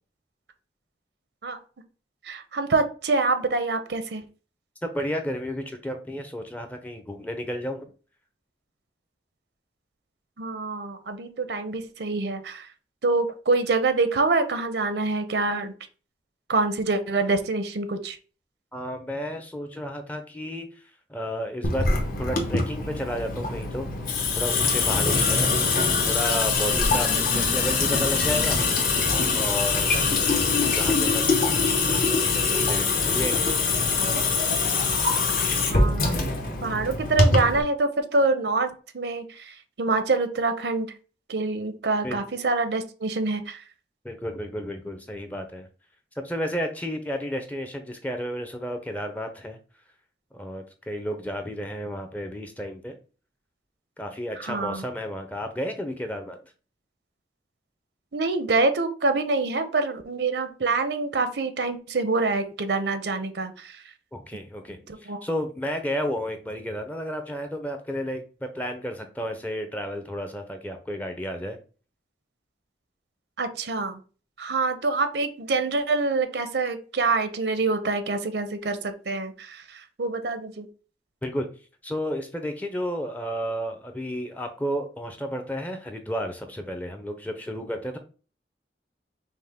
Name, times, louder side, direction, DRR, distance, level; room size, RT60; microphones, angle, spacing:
voice 1, 2.3-4.2 10.4-12.7 13.0-15.7 16.5-18.2 35.7-36.2 36.6-40.9 41.3-43.6 54.5-54.8 58.1-63.8 65.1-65.2 73.4-74.0 74.4-80.7, right 3 dB, 75° right, 8 dB, 0.7 m, -26 dB
voice 2, 4.8-7.9 18.7-21.9 22.2-23.9 24.4-25.5 26.0-28.6 29.3-31.5 31.8-33.6 42.0-42.2 44.0-45.7 46.2-49.6 50.3-52.9 54.0-56.4 64.1-71.6 81.2-81.5 81.8-88.0, equal, 10° left, 5 dB, 0.5 m, -32 dB
Water tap faucet / Sink (filling or washing) / Drip, 21.6-37.6, left 4 dB, 50° left, 0.9 m, -23 dB
5.4 x 2.1 x 3.5 m, 0.37 s
head